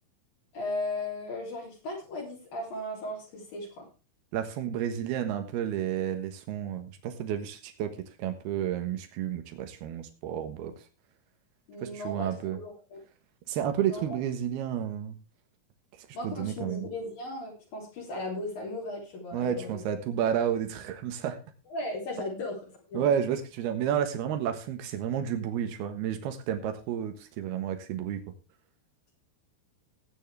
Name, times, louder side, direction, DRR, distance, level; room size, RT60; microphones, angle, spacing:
voice 1, 0.5-3.9 11.7-13.0 13.9-14.0 16.1-19.8 21.7-22.6 22.9-23.0, left 1 dB, 65° left, -3 dB, 5.1 m, -36 dB
voice 2, 4.3-10.7 11.8-12.6 13.5-15.2 16.2-16.9 19.3-21.4 22.9-28.2, right 9 dB, 85° right, 7 dB, 3.4 m, -31 dB
17.0 x 9.3 x 3.4 m, 0.32 s
omnidirectional pair, 4.4 m